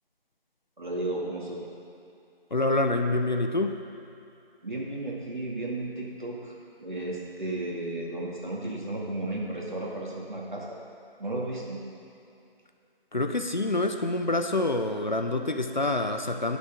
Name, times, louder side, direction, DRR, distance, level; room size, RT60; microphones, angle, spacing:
voice 1, 0.8-1.6 4.6-10.8 11.2-11.8, right 2 dB, 50° right, -3 dB, 2.4 m, -34 dB
voice 2, 2.5-3.7 13.1-16.6, left 2 dB, 50° left, 6 dB, 0.7 m, -26 dB
20.0 x 7.0 x 3.8 m, 2.6 s
figure-of-eight pair, 165°, 30 cm